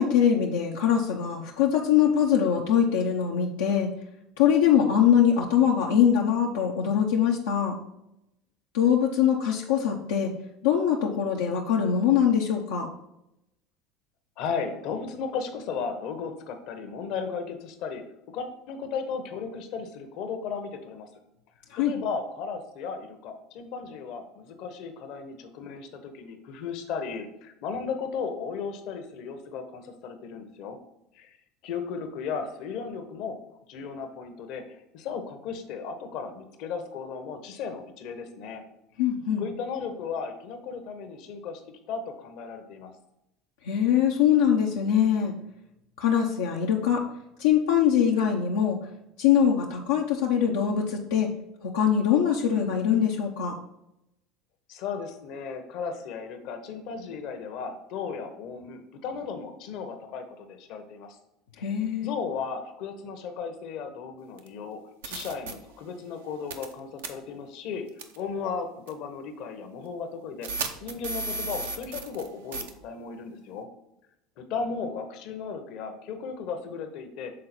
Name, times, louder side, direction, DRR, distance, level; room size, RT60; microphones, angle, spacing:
voice 1, 0.0-3.9 4.4-7.7 8.7-10.3 10.6-12.9 21.7-21.9 39.0-39.4 43.7-45.3 46.0-47.0 47.4-48.8 49.2-51.3 51.7-53.6 61.6-62.1, left 8 dB, 85° left, -1 dB, 0.7 m, -23 dB
voice 2, 14.4-21.1 21.8-30.8 31.1-31.4 31.6-33.4 33.7-38.6 39.4-42.9 54.7-61.2 61.6-67.9 68.2-70.5 70.8-73.7 74.4-77.3, left 5 dB, 65° left, 7 dB, 1.0 m, -35 dB
sound 1, 64.4-64.5 65.0-65.5 66.5-66.7 67.0-67.1 68.0-68.2 68.9-69.0 70.4-72.3 72.5-72.7, right 3 dB, 85° right, 0.7 m, -33 dB
6.5 x 3.9 x 4.3 m, 0.85 s
hypercardioid pair, 90°, 0 cm